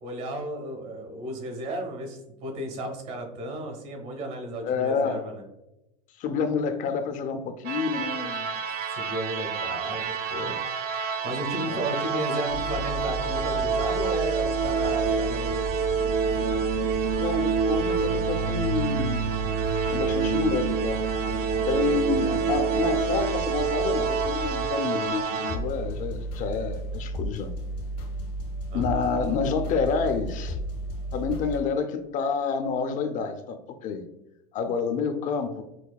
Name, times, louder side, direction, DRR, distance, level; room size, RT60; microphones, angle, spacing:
voice 1, 0.0-5.4 8.9-10.5 11.2-15.7 22.2-22.4 28.7-29.1, right 1 dB, 70° right, 2 dB, 1.3 m, -34 dB
voice 2, 4.6-5.3 6.2-8.5 11.6-11.9 17.2-19.3 19.9-21.1 21.7-27.5 28.7-30.6 31.1-34.1 34.5-35.6, left 5 dB, 40° left, 8 dB, 0.4 m, -28 dB
sound 1, 7.6-25.6, right 5 dB, 50° right, 0.5 m, -27 dB
sound 2, 12.5-31.6, right 1 dB, 85° left, 1.1 m, -34 dB
5.7 x 2.2 x 2.2 m, 0.93 s
hypercardioid pair, 100°, 20 cm